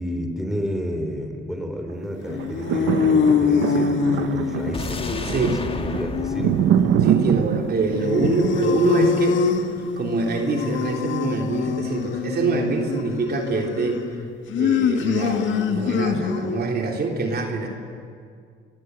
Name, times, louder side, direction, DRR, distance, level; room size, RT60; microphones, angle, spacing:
voice 1, 0.0-6.6, equal, ahead, 4 dB, 3.9 m, -31 dB
sound 1, 2.2-16.7, left 6 dB, 70° left, 1.7 m, -24 dB
sound 2, 2.3-10.5 11.1-11.2, right 10 dB, 90° right, 0.9 m, -25 dB
sound 3, 4.7-7.9 8.2-8.3, left 3 dB, 30° left, 1.7 m, -34 dB
voice 2, 5.2-5.6 7.0-9.4 10.0-14.0 14.6-17.7, right 4 dB, 55° right, 2 dB, 3.4 m, -25 dB
28.5 x 22.5 x 8.2 m, 2.2 s
cardioid pair, 90°, 20 cm